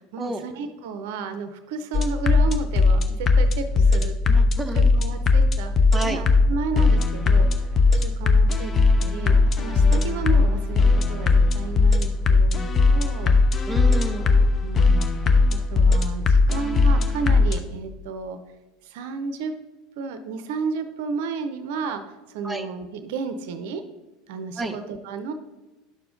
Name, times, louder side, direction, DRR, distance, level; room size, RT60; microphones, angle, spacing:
voice 1, 0.1-4.2 4.7-5.7 6.0-7.5 7.9-8.7 9.0-13.4 14.3-15.0 15.7-18.4 18.8-19.5 20.0-22.0 22.3-23.8 24.3-25.3, right 4 dB, 60° right, 9 dB, 0.7 m, -32 dB
sound 1, 1.9-17.6, left 3 dB, 30° left, 0.9 m, -19 dB
voice 2, 4.3-4.9 5.9-6.2 13.7-14.3 22.4-22.7 24.6-24.8, right 2 dB, 10° right, 5 dB, 0.8 m, -30 dB
10.5 x 6.8 x 3.8 m, 1.1 s
figure-of-eight pair, 75°, 0 cm